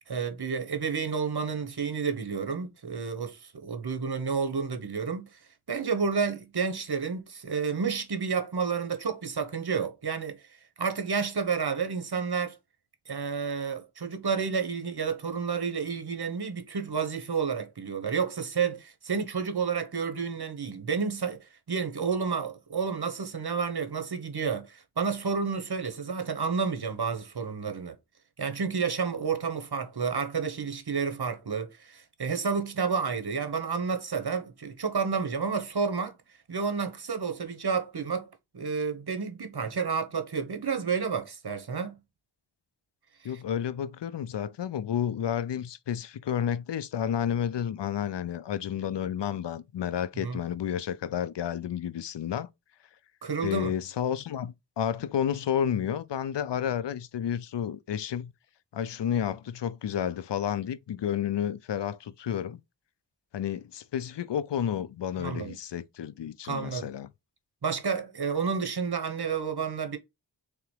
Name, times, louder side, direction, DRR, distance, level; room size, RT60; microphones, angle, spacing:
voice 1, 0.1-5.4 5.7-10.4 10.8-12.6 13.1-28.0 28.4-36.2 36.5-38.3 38.5-42.0 43.2-43.4 50.2-50.4 53.2-53.7 65.2-65.5 66.4-66.9 67.6-70.0, right 5 dB, 65° right, 1.1 m, -30 dB
voice 2, 43.2-52.5 53.4-58.3 58.7-62.6 63.3-67.1, left 9 dB, 85° left, 0.5 m, -31 dB
3.9 x 3.4 x 3.2 m
wide cardioid pair, 40°, 41 cm